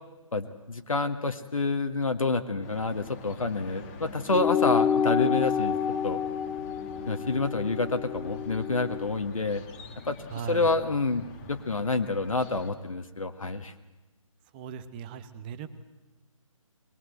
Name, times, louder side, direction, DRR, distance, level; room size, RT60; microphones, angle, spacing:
voice 1, 0.3-5.8 6.0-6.2 7.1-9.6 10.1-10.2 10.5-13.7, left 3 dB, 75° left, 6 dB, 1.8 m, -28 dB
sound 1, 2.6-12.7, left 3 dB, 20° left, 1.9 m, -46 dB
sound 2, 4.3-9.1, left 8 dB, 5° left, 0.8 m, -28 dB
voice 2, 10.3-10.7 14.5-15.7, right 8 dB, 15° right, 12 dB, 1.0 m, -38 dB
22.0 x 21.0 x 7.9 m, 1.1 s
figure-of-eight pair, 150°, 18 cm